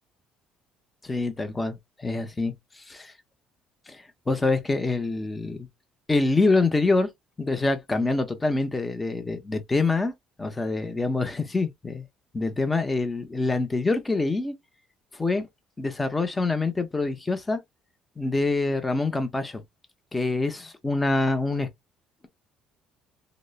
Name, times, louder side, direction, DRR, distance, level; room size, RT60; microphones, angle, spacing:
voice 1, 1.0-2.5 2.9-3.1 3.9-5.7 6.1-7.1 7.4-10.1 10.4-12.0 12.3-14.5 15.1-15.5 15.8-17.6 18.2-19.6 20.1-21.7, left 3 dB, 20° left, 0.6 m, -25 dB
2.9 x 2.0 x 2.2 m
supercardioid pair, 85°, 0 cm